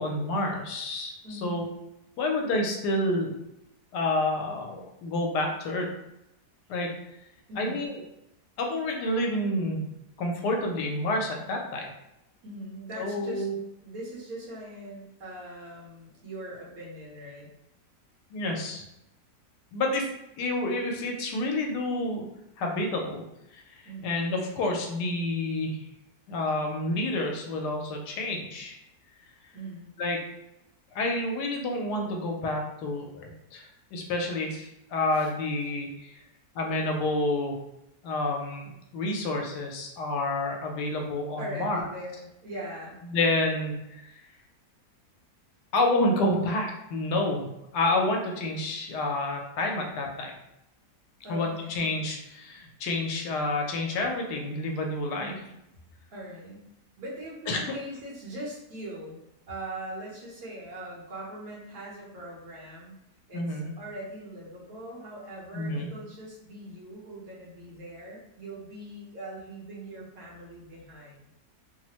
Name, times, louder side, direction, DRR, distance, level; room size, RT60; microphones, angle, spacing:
voice 1, 0.0-1.7 2.2-3.3 3.9-5.9 6.7-6.9 7.6-8.0 8.6-9.8 10.2-11.9 13.0-13.5 18.3-18.8 19.7-20.1 20.4-22.2 22.6-23.2 23.5-25.8 26.3-28.8 30.0-30.2 30.9-36.1 36.5-37.6 38.0-41.8 43.0-44.1 45.7-47.5 47.7-50.3 51.3-55.3 57.5-57.7 63.3-63.7 65.5-65.9, left 2 dB, 85° left, 1 dB, 1.2 m, -29 dB
voice 2, 1.2-1.7 7.5-7.9 12.4-13.5 13.8-17.5 23.8-24.1 29.5-29.9 35.1-35.3 36.1-36.3 41.4-43.0 51.2-52.0 55.2-55.5 56.1-56.7 57.0-59.2 59.5-63.0 63.3-71.2, right 1 dB, 65° right, -5 dB, 1.3 m, -41 dB
3.1 x 2.0 x 2.9 m, 0.84 s
omnidirectional pair, 1.7 m